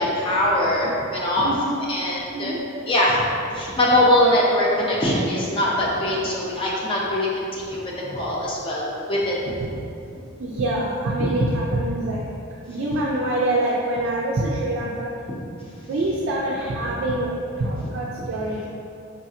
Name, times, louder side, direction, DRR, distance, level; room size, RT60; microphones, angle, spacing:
voice 1, 0.0-2.6 2.9-3.2 3.5-7.3 7.5-9.3 15.3-15.4, left 1 dB, 25° left, -4 dB, 0.5 m, -22 dB
voice 2, 10.4-12.2 12.7-15.1 15.9-18.7, right 1 dB, 55° right, -4 dB, 0.3 m, -25 dB
4.8 x 2.8 x 2.4 m, 2.5 s
head